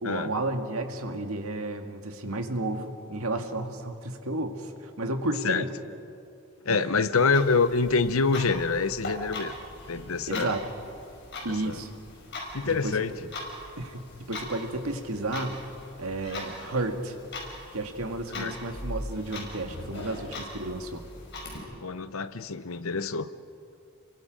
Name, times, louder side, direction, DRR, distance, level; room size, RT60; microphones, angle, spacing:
voice 1, 0.0-5.7 6.7-6.9 10.3-10.6 11.4-11.9 12.6-13.0 13.8-15.6 16.0-17.2 17.7-21.0, right 2 dB, 85° right, 5 dB, 1.9 m, -32 dB
voice 2, 6.6-9.5 9.9-10.5 11.5-11.8 12.5-13.2 18.3-18.5 21.8-23.3, left 4 dB, 75° left, 13 dB, 0.8 m, -26 dB
Clock, 7.1-21.6, left 1 dB, 55° left, 5.3 m, -41 dB
30.0 x 23.0 x 5.2 m, 2.6 s
head